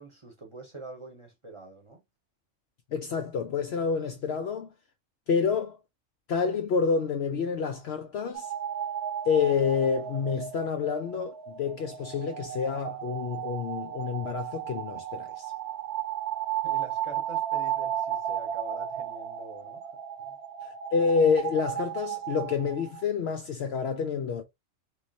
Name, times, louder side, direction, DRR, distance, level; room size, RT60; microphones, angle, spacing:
voice 1, 0.0-2.0 16.6-19.9 20.2-20.4, right 2 dB, 25° right, 0.9 m, -45 dB
voice 2, 2.9-4.7 5.3-5.8 6.3-8.5 9.3-15.5 20.6-24.4, left 6 dB, 65° left, 0.7 m, -28 dB
sound 1, 8.3-23.0, right 10 dB, 60° right, 0.8 m, -34 dB
3.6 x 3.1 x 2.7 m
omnidirectional pair, 1.4 m